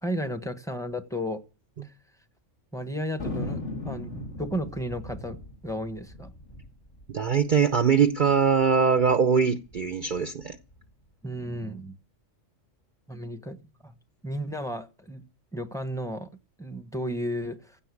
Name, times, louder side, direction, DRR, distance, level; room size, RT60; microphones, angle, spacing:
voice 1, 0.0-1.4 1.8-1.9 2.7-6.3 11.2-12.0 13.1-13.9 14.2-15.2 15.5-16.3 16.6-17.8, equal, 5° left, 9 dB, 1.1 m, -33 dB
Thunder, 3.2-8.0 8.3-8.4 8.6-9.1 9.6-10.8, left 1 dB, 65° left, 3.1 m, -38 dB
voice 2, 7.1-10.6, right 6 dB, 45° right, 9 dB, 0.8 m, -22 dB
16.0 x 5.6 x 8.5 m, 0.35 s
omnidirectional pair, 1.3 m